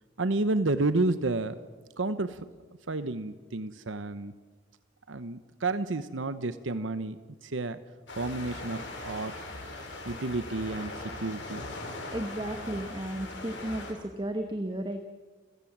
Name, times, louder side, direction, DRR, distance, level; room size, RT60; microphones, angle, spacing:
voice 1, 0.2-1.5 2.0-2.5 2.9-4.3 5.1-7.8 8.2-9.3 10.0-11.7, right 2 dB, 85° right, 12 dB, 0.9 m, -31 dB
sound 1, 8.1-13.9, left 2 dB, 75° left, 5.5 m, -40 dB
voice 2, 12.1-15.0, right 1 dB, 25° right, 7 dB, 1.2 m, -34 dB
30.0 x 15.0 x 7.5 m, 1.4 s
head